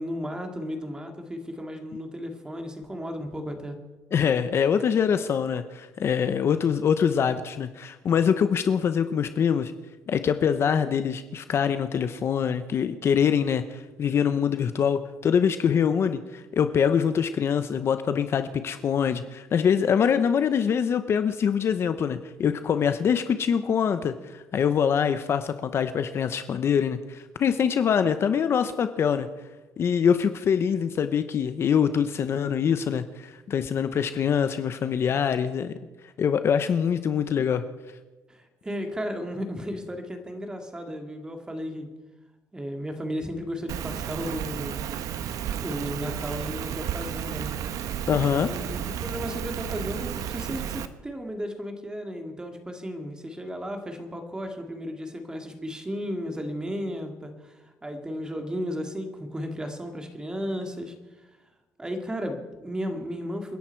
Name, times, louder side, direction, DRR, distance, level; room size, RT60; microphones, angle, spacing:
voice 1, 0.0-3.8 38.3-41.9 42.5-44.8 45.6-47.5 48.5-60.9 61.8-63.6, equal, 10° right, 5 dB, 2.1 m, -34 dB
voice 2, 4.1-9.7 10.1-29.3 29.8-35.8 36.2-37.6 48.1-48.5, left 7 dB, 45° left, 10 dB, 0.9 m, -24 dB
Rain, 43.7-50.9, right 9 dB, 65° right, 1.1 m, -32 dB
28.5 x 11.0 x 4.6 m, 1.2 s
cardioid pair, 135°, 6 cm